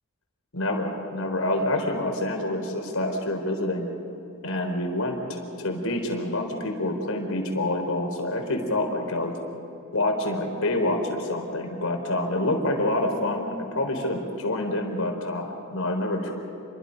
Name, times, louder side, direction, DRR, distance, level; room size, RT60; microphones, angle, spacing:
voice 1, 0.5-3.9 4.4-9.3 9.9-16.3, left 1 dB, 80° left, 3 dB, 4.3 m, -27 dB
29.0 x 23.0 x 5.4 m, 3.0 s
head